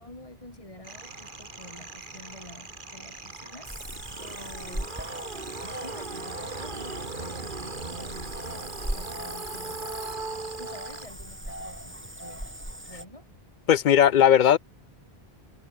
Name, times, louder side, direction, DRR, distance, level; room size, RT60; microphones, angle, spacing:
voice 1, 0.0-5.0 5.3-10.0 10.6-12.4 12.9-13.3, left 1 dB, 30° left, 3.4 m, -49 dB
sound 1, 0.8-11.1, right 3 dB, 50° right, 2.3 m, -39 dB
Cricket / Frog, 3.6-13.1, right 1 dB, 10° right, 2.7 m, -39 dB
voice 2, 13.7-14.6, left 9 dB, 60° left, 0.6 m, -17 dB
omnidirectional pair, 1.1 m